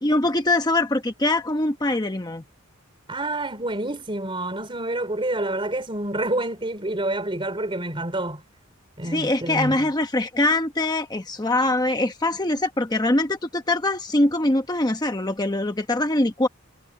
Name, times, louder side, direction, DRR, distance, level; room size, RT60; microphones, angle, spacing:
voice 1, 0.0-2.4 9.0-16.5, left 2 dB, 20° left, 1.0 m, -23 dB
voice 2, 3.1-8.4 9.0-9.9, right 1 dB, 25° right, 3.8 m, -28 dB
head